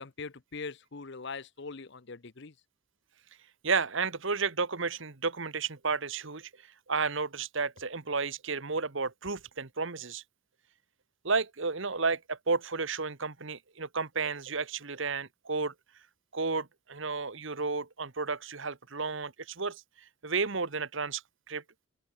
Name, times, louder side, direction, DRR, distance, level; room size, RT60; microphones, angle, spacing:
voice 1, 0.0-2.5, left 4 dB, 55° left, 0.8 m, -41 dB
voice 2, 3.6-6.5 6.9-10.2 11.2-15.7 16.3-19.8 20.2-21.2 21.5-21.6, right 4 dB, 60° right, 1.4 m, -32 dB
open air
head